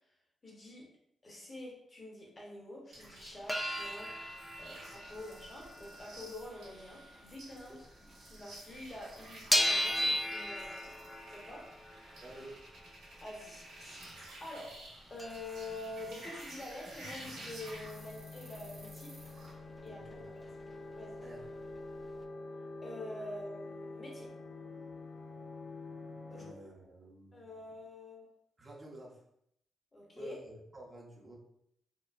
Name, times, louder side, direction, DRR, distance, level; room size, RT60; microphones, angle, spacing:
voice 1, 0.4-0.9 1.2-4.1 4.6-11.7 13.2-14.0 14.4-14.8 15.1-19.2 19.8-20.3 20.9-21.1 22.8-24.3 26.3-26.4 27.3-28.3 29.9-30.3, left 2 dB, 35° left, -2 dB, 1.1 m, -47 dB
sound 1, 2.9-19.5, right 1 dB, 80° right, 1.0 m, -52 dB
sound 2, 3.2-8.4 8.7-14.3 14.7-14.8 15.0-18.9 19.2-20.1 20.4-20.5 20.8-21.8 22.2-22.3, equal, 5° left, 0.4 m, -38 dB
voice 2, 12.2-12.5 19.8-20.3 21.2-21.5 26.3-27.6 28.6-29.2 30.2-31.3, right 1 dB, 35° right, -2 dB, 0.8 m, -50 dB
sound 3, 17.0-26.5, left 3 dB, 70° left, 0.4 m, -47 dB
2.8 x 2.0 x 2.5 m, 0.73 s
supercardioid pair, 50°, 0 cm